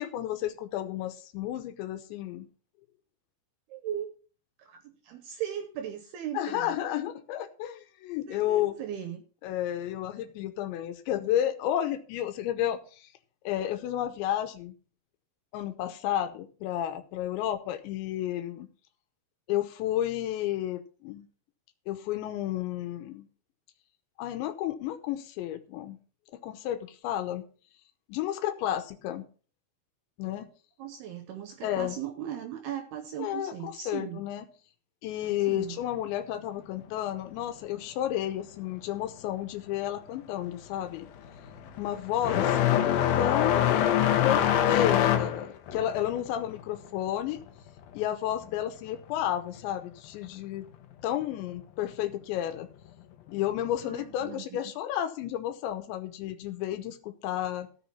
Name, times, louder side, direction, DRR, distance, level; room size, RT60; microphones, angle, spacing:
voice 1, 0.0-2.5 6.3-8.8 9.4-13.1 13.5-14.8 15.5-18.7 19.5-21.3 21.9-23.3 24.2-26.0 26.4-27.4 28.1-29.2 30.2-30.5 31.6-32.0 33.2-34.5 35.0-41.1 41.8-42.7 43.2-43.8 44.2-47.4 47.9-50.7 51.0-52.7 53.3-57.7, left 12 dB, 85° left, 8 dB, 3.2 m, -32 dB
voice 2, 3.7-4.1 4.6-6.7 8.3-9.2 30.8-34.2 35.5-35.8 53.8-54.6, right 10 dB, 75° right, 7 dB, 2.7 m, -38 dB
sound 1, 39.7-40.0 40.3-48.6 48.9-49.9 50.9-51.0 51.8-51.9 53.7-53.8, left 10 dB, 70° left, 2.4 m, -26 dB
14.0 x 6.5 x 5.5 m, 0.39 s
omnidirectional pair, 5.1 m